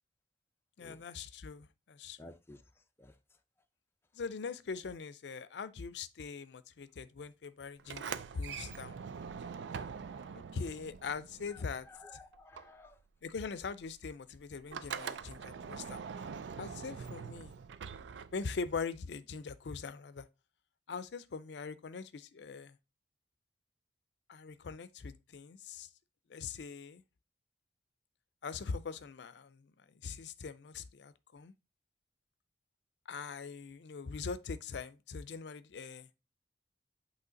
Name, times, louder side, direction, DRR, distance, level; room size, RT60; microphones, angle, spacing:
voice 1, 0.8-2.3 4.1-9.0 10.3-11.9 13.2-16.0 16.6-17.5 18.3-20.3 20.9-22.8 24.3-25.9 26.3-27.0 28.4-29.7 30.0-31.5 33.1-36.1, left 5 dB, 75° left, 0.4 m, -42 dB
voice 2, 2.2-2.6 3.0-3.1 11.5-13.0, left 2 dB, 15° left, 0.5 m, -54 dB
Sliding door, 7.8-12.1 12.3-18.7, right 6 dB, 90° right, 0.4 m, -44 dB
8.1 x 3.2 x 3.8 m
head